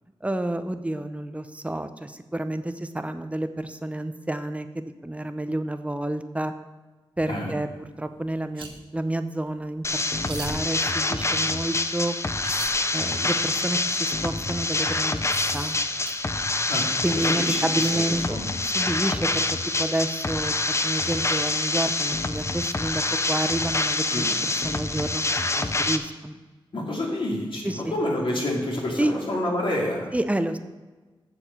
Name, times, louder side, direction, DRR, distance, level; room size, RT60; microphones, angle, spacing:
voice 1, 0.2-6.5 7.2-10.0 10.3-12.2 12.9-15.2 15.5-15.8 17.0-19.4 19.8-20.5 20.8-23.0 23.3-26.4 27.6-27.9 29.0-29.1 30.1-30.6, right 1 dB, 15° right, 9 dB, 0.7 m, -29 dB
voice 2, 7.3-7.6 16.7-18.5 24.1-24.3 26.7-30.2, left 1 dB, 65° left, -3 dB, 2.8 m, -29 dB
sound 1, 8.5-8.7 9.5-9.6 10.2-10.5 12.4-12.7 14.1-14.2 15.1-16.1 18.6-18.7, right 3 dB, 65° right, 1.4 m, -38 dB
sound 2, 9.8-26.0, left 2 dB, 30° left, 0.6 m, -26 dB
7.3 x 7.1 x 6.7 m, 1.3 s
cardioid pair, 65°, 9 cm